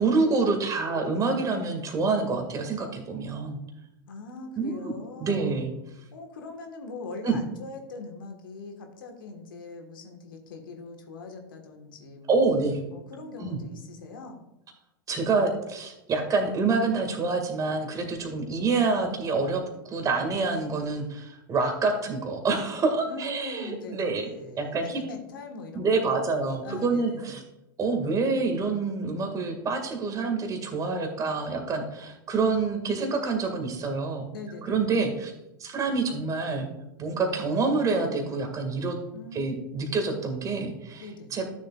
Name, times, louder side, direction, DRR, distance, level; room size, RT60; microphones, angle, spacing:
voice 1, 0.0-3.6 4.6-4.9 5.2-5.7 7.2-7.4 12.3-12.8 13.4-13.6 15.1-24.3 24.6-25.0 25.7-27.4 27.8-34.3 34.6-35.3 35.6-36.7 37.0-39.0 39.3-41.0 41.3-41.5, right 4 dB, 30° right, 3 dB, 2.2 m, -27 dB
voice 2, 4.1-5.6 6.1-12.5 12.9-14.4 23.1-26.2 26.6-27.4 34.3-34.9 39.1-39.4 39.8-40.0 41.0-41.4, left 3 dB, 75° left, 4 dB, 1.6 m, -41 dB
12.5 x 7.1 x 2.5 m, 0.88 s
hypercardioid pair, 90°, 11 cm